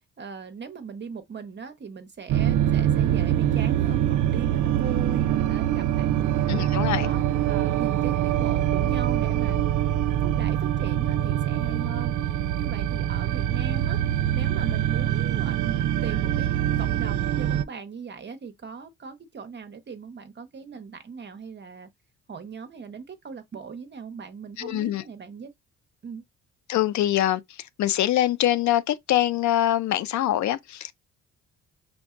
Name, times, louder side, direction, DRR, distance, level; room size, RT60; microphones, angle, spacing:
voice 1, 0.2-6.7 7.0-9.6 10.2-14.0 14.3-21.9 22.3-25.5 26.0-26.2, right 5 dB, 35° right, 0.7 m, -39 dB
sound 1, 2.3-17.6, right 11 dB, 75° right, 0.5 m, -24 dB
voice 2, 6.5-7.1 24.6-25.0 26.7-27.4 27.8-30.9, left 13 dB, 70° left, 0.6 m, -24 dB
5.2 x 3.5 x 2.4 m
cardioid pair, 90°, 30 cm